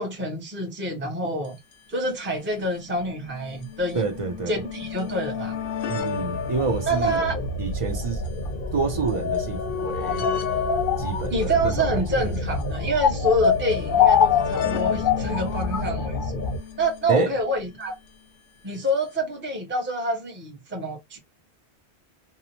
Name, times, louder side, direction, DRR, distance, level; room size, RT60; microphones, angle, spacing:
voice 1, 0.0-1.6 1.9-4.0 4.5-5.6 6.9-7.4 11.3-16.5 16.8-17.9 18.6-21.2, right 1 dB, 15° right, 0.6 m, -27 dB
sound 1, 1.4-1.5 1.7-1.8 2.7-17.9 18.9-19.0 19.1-19.2, left 8 dB, 90° left, 0.9 m, -34 dB
voice 2, 3.9-4.6 5.9-7.2 7.6-8.2 8.7-10.3 11.0-12.0 17.1-17.3, right 4 dB, 50° right, 0.4 m, -28 dB
sound 2, 6.2-16.6, left 5 dB, 60° left, 0.7 m, -25 dB
2.7 x 2.0 x 2.7 m
omnidirectional pair, 1.1 m